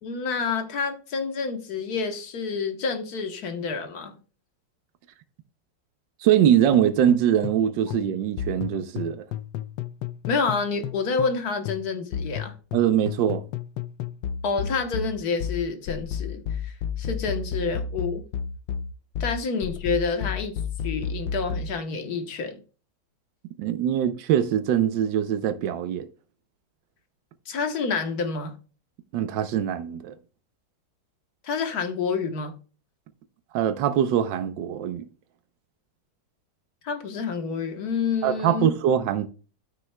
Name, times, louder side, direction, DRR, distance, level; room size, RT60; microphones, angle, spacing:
voice 1, 0.0-4.2 10.3-12.5 14.4-18.2 19.2-20.5 20.8-22.6 27.5-28.5 31.4-32.5 36.8-38.7, left 5 dB, 60° left, 1.5 m, -28 dB
voice 2, 6.2-9.2 12.7-13.4 23.6-26.1 29.1-30.1 33.5-35.0 38.2-39.3, right 10 dB, 85° right, 1.4 m, -23 dB
sound 1, 6.7-11.4 11.7-21.7, left 7 dB, 85° left, 1.3 m, -32 dB
13.0 x 6.0 x 2.2 m
omnidirectional pair, 1.9 m